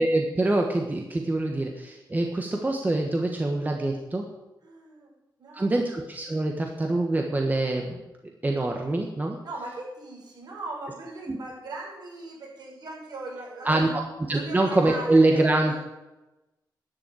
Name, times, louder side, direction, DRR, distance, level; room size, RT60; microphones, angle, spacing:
voice 1, 0.0-4.3 5.5-7.9 8.4-9.4 11.3-11.4 13.6-13.9 14.3-15.7, right 2 dB, 25° right, 2 dB, 1.4 m, -24 dB
voice 2, 4.6-5.1 5.4-5.9 9.4-13.9 14.3-15.7, right 2 dB, 65° right, -2 dB, 5.6 m, -39 dB
12.0 x 7.0 x 9.2 m, 1.0 s
wide cardioid pair, 110°, 8 cm